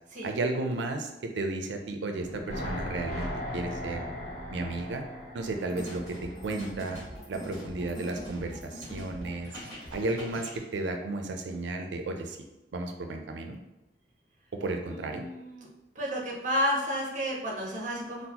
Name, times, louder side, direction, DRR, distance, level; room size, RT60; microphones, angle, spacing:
voice 1, 0.2-4.1 4.5-5.0 5.3-7.0 7.3-9.5 9.9-12.4 12.7-13.6 14.5-15.3, right 2 dB, 85° right, 5 dB, 0.4 m, -33 dB
sound 1, 2.2-7.3 7.6-7.7, left 1 dB, 40° left, 0.9 m, -38 dB
sound 2, 5.6-10.6, equal, 20° left, 1.3 m, -42 dB
voice 2, 14.8-15.7 15.9-18.3, equal, 45° right, -1 dB, 0.7 m, -31 dB
3.8 x 2.1 x 2.8 m, 0.98 s
head